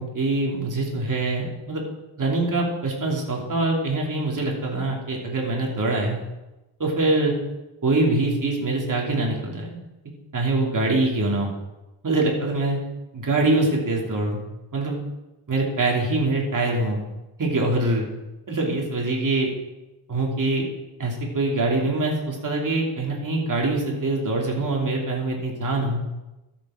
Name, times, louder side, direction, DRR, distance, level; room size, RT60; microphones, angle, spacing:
voice 1, 0.0-1.8 2.2-6.2 6.8-7.3 7.8-9.8 10.3-11.5 12.0-12.8 13.1-14.4 14.7-15.0 15.5-17.0 17.4-18.0 18.5-19.5 20.1-20.6 21.0-26.0, right 2 dB, 40° right, -1 dB, 2.9 m, -24 dB
13.0 x 7.3 x 5.0 m, 1.0 s
cardioid pair, 110°, 50 cm